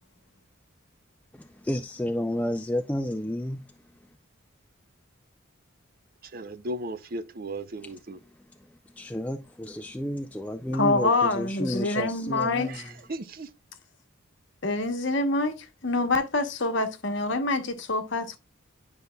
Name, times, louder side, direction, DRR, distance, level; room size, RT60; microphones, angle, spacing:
voice 1, 1.3-3.6 9.0-12.9, left 1 dB, 5° left, 0.3 m, -31 dB
voice 2, 6.3-8.2 12.7-13.5, right 1 dB, 45° right, 0.5 m, -36 dB
voice 3, 10.7-12.7 14.6-15.5 15.8-18.4, left 2 dB, 60° left, 1.0 m, -26 dB
9.9 x 5.2 x 2.2 m
head